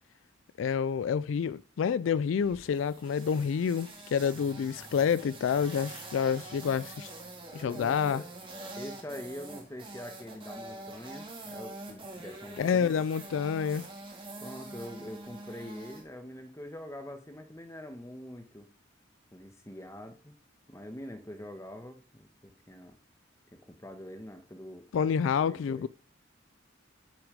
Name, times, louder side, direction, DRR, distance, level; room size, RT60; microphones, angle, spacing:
voice 1, 0.6-7.1 7.5-8.2 12.6-13.9 24.9-25.9, left 7 dB, 80° left, 0.3 m, -28 dB
sound 1, 2.4-16.0, right 2 dB, 25° right, 2.1 m, -45 dB
sound 2, 4.3-10.9, equal, 70° right, 2.7 m, -60 dB
voice 2, 7.6-8.2 8.8-13.0 14.4-18.7 19.3-20.4 20.7-23.0 23.5-24.9 25.4-25.9, left 1 dB, 15° left, 1.1 m, -44 dB
8.8 x 6.0 x 5.0 m
head